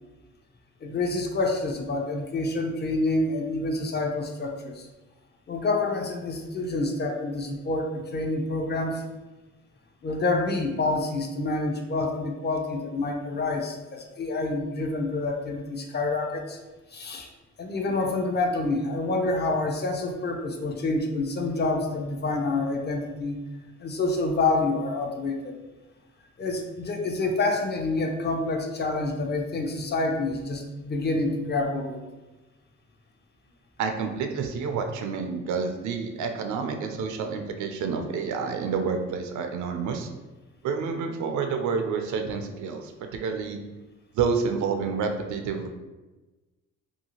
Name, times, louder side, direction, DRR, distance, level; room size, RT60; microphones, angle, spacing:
voice 1, 0.8-4.9 5.5-9.0 10.0-16.6 16.9-17.3 17.6-23.4 23.8-25.6 26.4-32.0, left 2 dB, 35° left, 3 dB, 0.5 m, -27 dB
voice 2, 33.8-40.1 40.6-43.6 44.1-45.7, right 5 dB, 75° right, 5 dB, 0.4 m, -29 dB
2.8 x 2.4 x 2.8 m, 1.2 s
cardioid pair, 90°, 30 cm